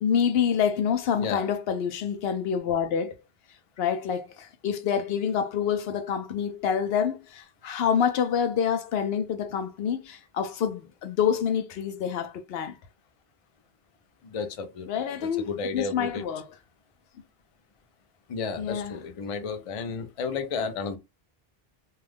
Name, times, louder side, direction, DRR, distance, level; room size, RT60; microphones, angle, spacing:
voice 1, 0.0-3.1 3.8-12.8 14.9-16.5 18.6-19.0, left 7 dB, 75° left, 0.8 m, -27 dB
voice 2, 1.2-1.5 14.2-14.9 15.4-16.2 18.3-21.0, left 5 dB, 50° left, 0.4 m, -32 dB
2.4 x 2.3 x 3.3 m
omnidirectional pair, 1.0 m